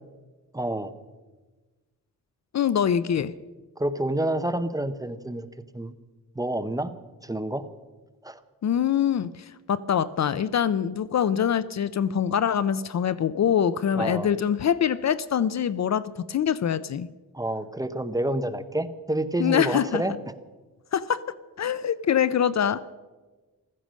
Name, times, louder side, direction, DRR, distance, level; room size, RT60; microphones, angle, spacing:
voice 1, 0.5-0.9 3.8-5.5 5.7-5.9 6.4-6.9 7.2-7.6 8.2-8.4 14.0-14.3 17.3-20.1, right 1 dB, 10° right, 11 dB, 0.7 m, -28 dB
voice 2, 2.5-3.3 8.6-17.1 19.4-20.0 20.9-22.8, left 8 dB, 50° left, 17 dB, 0.5 m, -24 dB
15.5 x 14.0 x 6.3 m, 1.3 s
wide cardioid pair, 140°, 35 cm